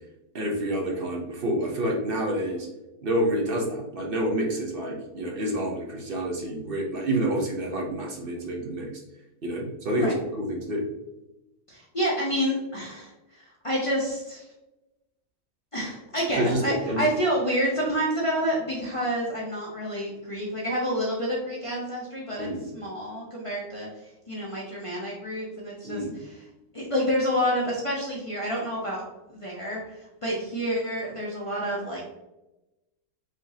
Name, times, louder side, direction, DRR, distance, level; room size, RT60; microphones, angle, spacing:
voice 1, 0.3-2.7 3.0-8.9 9.4-10.8 16.4-17.1 22.4-22.6 25.8-26.1, right 1 dB, 50° right, 0 dB, 0.7 m, -28 dB
voice 2, 11.7-14.5 15.7-23.9 24.3-26.4 26.7-29.0 29.3-32.0, equal, 60° left, -5 dB, 0.3 m, -28 dB
5.2 x 3.6 x 2.7 m, 0.99 s
omnidirectional pair, 2.0 m